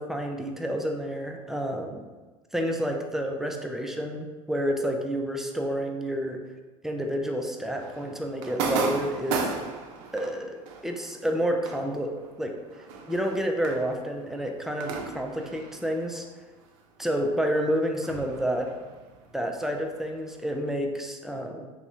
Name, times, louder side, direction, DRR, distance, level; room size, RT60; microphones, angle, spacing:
voice 1, 0.0-2.1 2.5-6.4 6.8-9.5 10.1-12.5 13.1-16.3 17.0-18.7 19.3-21.7, equal, ahead, 2 dB, 0.3 m, -29 dB
sound 1, 7.8-16.8 17.0-20.6, right 5 dB, 65° right, 0.4 m, -36 dB
3.4 x 2.0 x 2.7 m, 1.3 s
hypercardioid pair, 70°, 17 cm